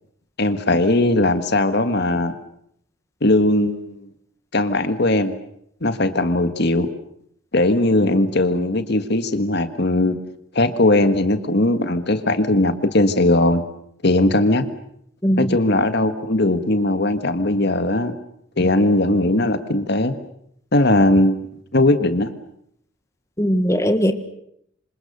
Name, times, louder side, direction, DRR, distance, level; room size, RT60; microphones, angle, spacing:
voice 1, 0.4-2.3 3.2-4.0 4.5-5.3 5.8-6.9 7.5-10.2 10.5-13.6 14.0-14.6 15.4-18.1 18.6-20.1 20.7-21.4 21.7-22.3, left 2 dB, 55° left, 10 dB, 1.7 m, -19 dB
voice 2, 15.2-15.6 23.4-24.1, equal, 15° left, 8 dB, 1.6 m, -19 dB
27.0 x 26.5 x 6.8 m, 0.72 s
head